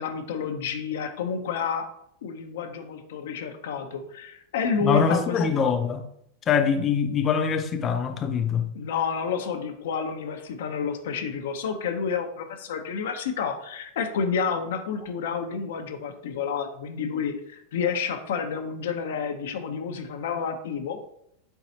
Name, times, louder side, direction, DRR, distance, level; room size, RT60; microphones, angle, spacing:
voice 1, 0.0-1.9 2.2-5.4 8.7-21.0, left 6 dB, 80° left, 0.6 m, -30 dB
voice 2, 4.8-6.1 6.5-8.7, left 6 dB, 30° left, 0.4 m, -23 dB
4.5 x 4.0 x 2.7 m
supercardioid pair, 130°, 0 cm